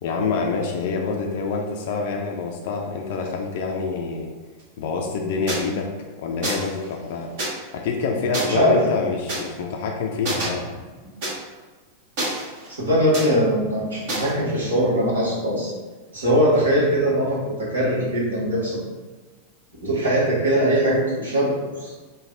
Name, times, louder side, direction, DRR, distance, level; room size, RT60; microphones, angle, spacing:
voice 1, 0.0-4.3 4.8-5.9 6.2-7.3 7.7-10.7, left 4 dB, 50° left, 1 dB, 0.4 m, -26 dB
sound 1, 5.5-5.6 6.4-6.7 7.4-7.5 8.3-8.4 9.3-9.4 10.2-10.5 11.2-11.3 12.2-12.7 13.1-13.3 14.1-14.3, right 1 dB, 50° right, 1.2 m, -27 dB
voice 2, 8.5-8.8 12.8-15.7 16.1-18.8 19.8-21.9, equal, 70° right, -6 dB, 1.2 m, -21 dB
3.2 x 2.3 x 3.7 m, 1.3 s
figure-of-eight pair, 90°, 0 cm